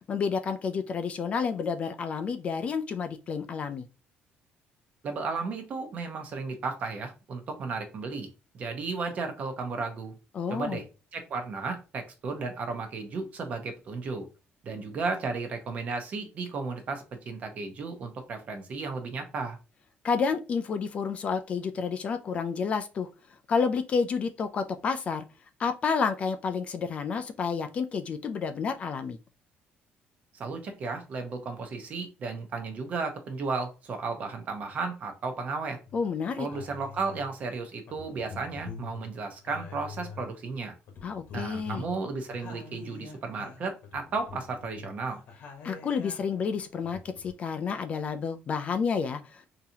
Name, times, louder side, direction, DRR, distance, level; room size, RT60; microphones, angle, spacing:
voice 1, 0.1-3.9 10.3-10.8 20.0-23.1 23.5-25.2 25.6-29.2 35.9-36.5 41.0-41.9 45.6-49.5, left 5 dB, 35° left, 0.3 m, -30 dB
voice 2, 5.0-8.3 8.5-10.1 10.5-10.8 11.1-14.3 14.6-19.6 30.4-35.8 36.4-40.7 41.3-45.2, right 4 dB, 40° right, 0.8 m, -34 dB
sound 1, 35.9-36.1 36.5-37.3 37.9-40.5 40.9-46.4 46.8-47.3, left 5 dB, 60° left, 1.0 m, -45 dB
3.8 x 2.8 x 2.7 m
cardioid pair, 170°, 4 cm